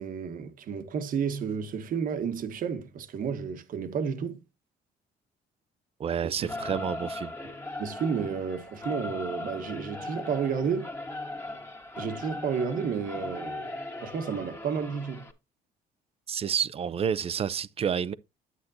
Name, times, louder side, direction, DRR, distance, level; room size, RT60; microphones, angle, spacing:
voice 1, 0.0-4.4 6.2-6.5 6.8-6.9 7.8-10.9 11.9-13.7 14.0-15.3, right 6 dB, 55° right, 1.3 m, -31 dB
voice 2, 6.0-7.3 16.3-18.1, right 8 dB, 35° right, 0.6 m, -29 dB
Singing / Musical instrument, 6.4-15.3, left 2 dB, 15° left, 1.6 m, -38 dB
9.7 x 8.3 x 2.7 m
cardioid pair, 110°, 17 cm